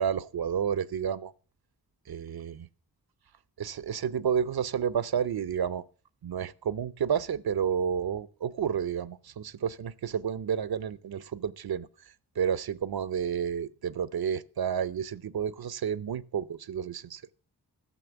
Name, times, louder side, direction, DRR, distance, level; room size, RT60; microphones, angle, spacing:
voice 1, 0.0-1.3 2.1-2.7 3.6-5.8 6.2-17.2, right 8 dB, 70° right, 0.6 m, -31 dB
13.0 x 6.5 x 7.9 m
wide cardioid pair, 90°, 38 cm